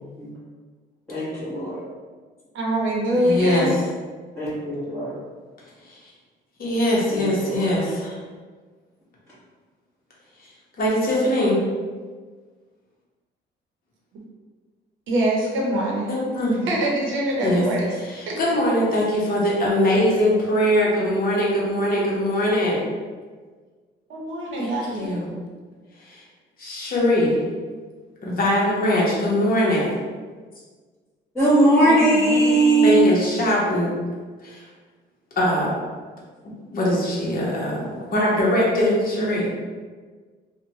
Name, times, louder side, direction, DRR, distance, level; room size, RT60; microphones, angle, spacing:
voice 1, 1.1-1.8 4.3-5.1 7.1-7.8 31.3-33.1, right 2 dB, 5° left, -15 dB, 1.1 m, -19 dB
voice 2, 2.5-3.7 15.1-16.1 16.6-17.9 18.3-18.4 24.1-25.1 31.9-33.0, right 1 dB, 80° right, -2 dB, 0.8 m, -24 dB
voice 3, 3.2-3.7 5.8-6.0 6.6-8.2 10.8-11.6 16.1-16.7 17.4-17.6 18.0-22.8 24.6-25.3 26.0-26.2 26.6-27.4 28.2-29.9 32.8-33.9 34.4-34.6 35.4-35.7 36.7-39.5, left 1 dB, 45° left, -5 dB, 0.9 m, -21 dB
2.7 x 2.2 x 2.7 m, 1.5 s
cardioid pair, 90°, 20 cm